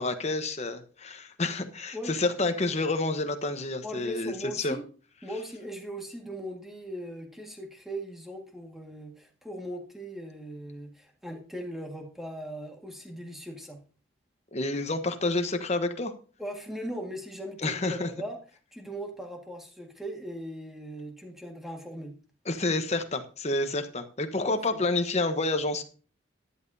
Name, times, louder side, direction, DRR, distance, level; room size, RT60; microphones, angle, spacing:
voice 1, 0.0-4.8 14.5-16.1 17.6-18.1 22.5-25.8, left 2 dB, 35° left, 8 dB, 1.1 m, -29 dB
voice 2, 3.8-4.8 5.2-13.8 16.4-18.4 18.7-22.1 24.4-24.8, equal, ahead, 1 dB, 1.8 m, -39 dB
13.5 x 11.0 x 2.8 m, 0.38 s
head